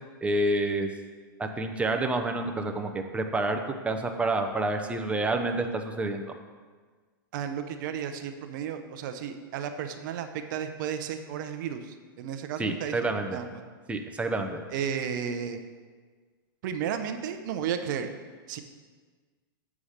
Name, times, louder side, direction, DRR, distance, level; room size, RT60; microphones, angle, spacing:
voice 1, 0.2-0.9 1.4-6.2 12.6-13.4 13.9-14.6, right 2 dB, 10° right, 5 dB, 0.7 m, -28 dB
voice 2, 7.3-12.9 13.3-13.7 14.7-15.6 16.6-18.1 18.5-18.6, right 8 dB, 55° right, 8 dB, 0.7 m, -33 dB
7.2 x 4.9 x 6.5 m, 1.5 s
hypercardioid pair, 125°, 12 cm